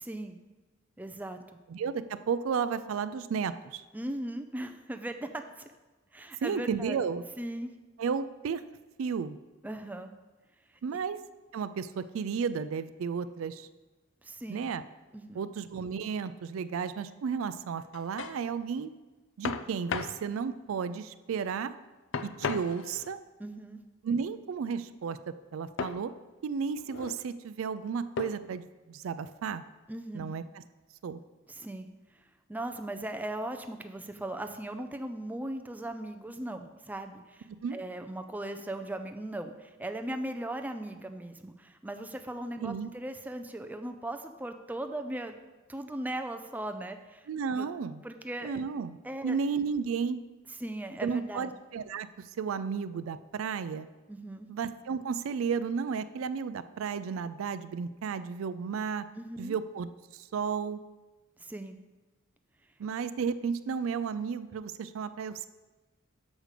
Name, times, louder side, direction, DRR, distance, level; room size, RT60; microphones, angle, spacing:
voice 1, 0.0-0.4 1.0-1.6 3.9-5.7 6.1-7.0 7.4-7.7 9.6-10.1 14.2-14.7 15.1-15.4 23.4-23.8 29.9-30.3 31.5-31.9 32.5-45.4 45.7-47.7 48.0-48.6 49.0-49.4 50.6-51.5 54.1-54.5 59.2-59.6 61.4-61.8, right 1 dB, 10° right, 7 dB, 0.4 m, -38 dB
voice 2, 1.7-3.8 6.4-7.2 8.0-8.6 9.0-9.4 10.8-11.2 11.5-13.7 14.5-14.8 15.3-18.9 19.4-21.7 22.2-23.2 24.0-26.1 26.4-29.6 30.1-30.6 31.0-31.2 37.6-37.8 42.6-42.9 47.3-48.0 48.4-49.0 49.2-50.2 51.0-52.1 52.4-53.9 54.5-59.1 59.4-60.8 62.8-65.5, right 6 dB, 75° right, 13 dB, 0.4 m, -33 dB
sound 1, 17.8-18.4 19.4-20.2 22.1-23.2 25.8-26.0 26.8-27.2 28.2-28.6, left 5 dB, 65° left, 0.4 m, -36 dB
6.2 x 5.0 x 6.5 m, 1.2 s
head